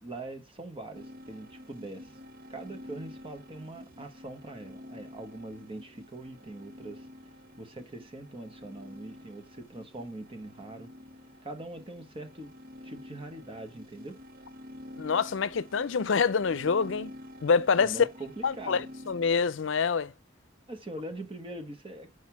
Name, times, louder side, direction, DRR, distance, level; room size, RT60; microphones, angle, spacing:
voice 1, 0.0-2.2 2.5-7.1 7.6-10.9 11.4-12.5 12.8-14.2 17.8-18.8 20.7-22.1, right 2 dB, 30° right, 1.0 m, -42 dB
sound 1, 0.9-19.4, left 1 dB, 50° right, 0.8 m, -48 dB
voice 2, 15.0-17.1 17.4-17.9 18.4-20.1, left 5 dB, 70° left, 0.5 m, -26 dB
6.4 x 4.8 x 5.7 m
head